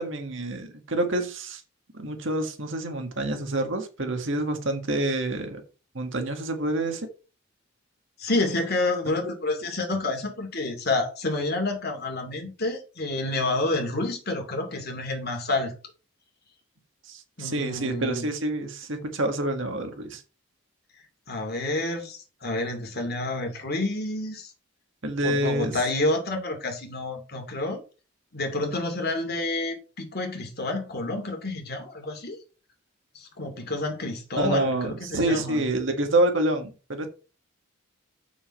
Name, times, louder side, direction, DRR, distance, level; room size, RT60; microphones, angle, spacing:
voice 1, 0.0-1.6 1.9-5.6 6.0-7.1 9.1-9.2 17.1-20.2 25.0-25.8 34.4-37.1, right 1 dB, 60° right, 1.8 m, -27 dB
voice 2, 8.2-15.7 17.4-18.3 21.3-24.5 25.2-27.8 28.3-32.4 33.1-35.6, left 2 dB, 45° left, 2.4 m, -29 dB
7.3 x 7.0 x 4.3 m
head